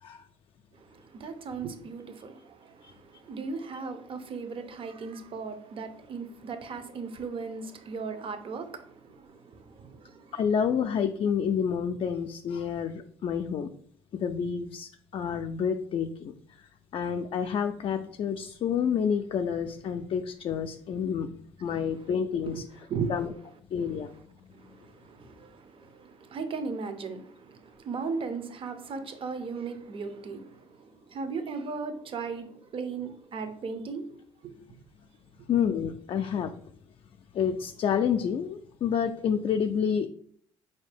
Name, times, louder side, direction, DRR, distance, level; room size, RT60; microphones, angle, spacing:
voice 1, 0.7-10.4 21.7-21.8 22.5-22.6 22.9-23.2 24.5-34.6, right 5 dB, 50° right, 0.7 m, -37 dB
voice 2, 10.3-13.7 14.1-16.6 16.9-21.3 21.6-22.6 23.1-23.3 23.7-24.1 35.5-36.5 37.3-40.1, left 7 dB, 50° left, 0.4 m, -29 dB
4.2 x 2.7 x 3.4 m
supercardioid pair, 65°, 12 cm